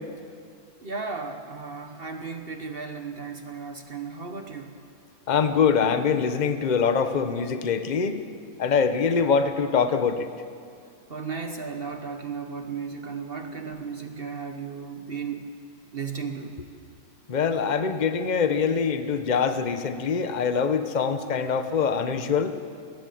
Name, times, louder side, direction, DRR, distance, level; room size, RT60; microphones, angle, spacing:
voice 1, 0.8-4.7 11.1-15.5 15.9-16.6, right 5 dB, 40° right, 6 dB, 1.3 m, -35 dB
voice 2, 5.3-8.2 8.6-10.3 17.3-22.6, left 6 dB, 35° left, 9 dB, 1.0 m, -24 dB
20.5 x 18.0 x 7.8 m, 2.3 s
omnidirectional pair, 1.5 m